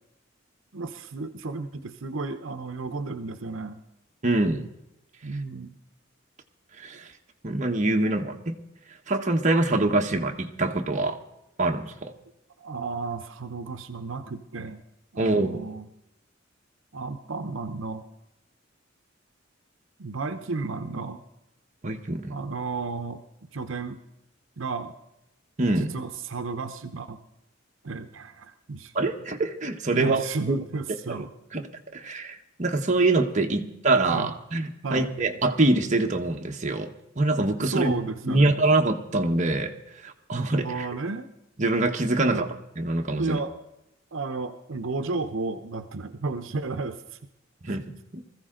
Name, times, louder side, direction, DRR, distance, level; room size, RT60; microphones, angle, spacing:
voice 1, 0.7-3.8 5.2-5.7 12.6-14.8 15.1-15.9 16.9-18.1 20.0-21.2 22.3-23.2 23.5-24.0 24.6-25.0 25.6-27.2 27.8-28.9 29.9-31.3 34.1-34.3 34.8-35.1 37.6-38.6 40.5-41.3 42.2-42.5 43.2-43.6 44.1-47.2 47.7-47.8, right 3 dB, 75° right, 9 dB, 0.8 m, -33 dB
voice 2, 4.2-4.7 6.8-7.1 7.4-8.6 9.1-11.2 11.6-12.1 15.2-15.6 21.8-22.4 25.6-25.9 28.9-30.6 31.1-31.3 31.5-31.6 31.9-37.9 38.2-39.7 40.0-40.9 41.6-42.5 42.8-43.4 47.6-47.9 48.1-48.2, right 2 dB, 40° right, 2 dB, 1.1 m, -24 dB
20.5 x 14.5 x 3.8 m, 0.86 s
head